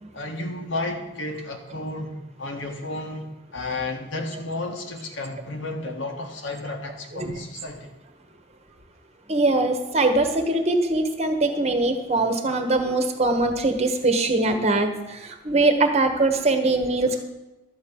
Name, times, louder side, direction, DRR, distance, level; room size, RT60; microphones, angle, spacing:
voice 1, 0.1-7.9, left 2 dB, 75° left, 3 dB, 1.7 m, -32 dB
voice 2, 9.3-17.2, right 2 dB, 35° right, 6 dB, 1.2 m, -22 dB
12.5 x 5.3 x 8.7 m, 1.0 s
head